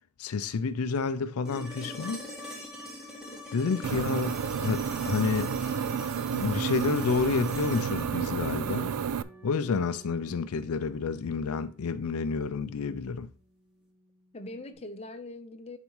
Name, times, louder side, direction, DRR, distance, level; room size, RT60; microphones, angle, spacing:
voice 1, 0.2-2.2 3.5-4.3 4.6-5.6 6.3-8.9 9.4-13.3, left 5 dB, 75° left, 0.5 m, -29 dB
sound 1, 1.4-9.5 11.6-11.7, left 1 dB, 5° right, 1.6 m, -43 dB
voice 2, 3.8-4.3 14.3-15.8, left 2 dB, 30° left, 0.7 m, -42 dB
sound 2, 3.8-9.2, right 7 dB, 85° right, 0.4 m, -31 dB
Bass guitar, 8.5-14.8, right 3 dB, 40° right, 4.2 m, -55 dB
10.5 x 4.1 x 3.1 m
head